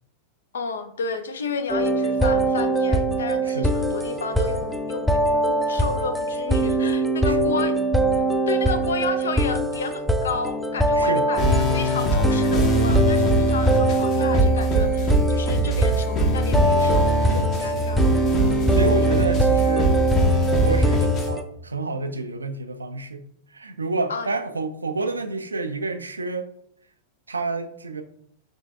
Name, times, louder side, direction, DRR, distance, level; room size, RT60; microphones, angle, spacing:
voice 1, 0.5-7.8 8.2-18.0 24.1-24.3, left 4 dB, 65° left, 0.4 m, -32 dB
sound 1, 1.7-21.4, right 2 dB, ahead, 0.4 m, -22 dB
voice 2, 3.4-3.8 7.2-7.5 10.9-11.2 17.6-17.8 18.7-20.0 20.5-23.3 23.5-26.5 27.3-28.0, right 3 dB, 75° right, 0.4 m, -29 dB
sound 2, 11.4-21.3, equal, 35° left, 0.8 m, -22 dB
5.2 x 3.2 x 2.4 m
figure-of-eight pair, 90°, 0 cm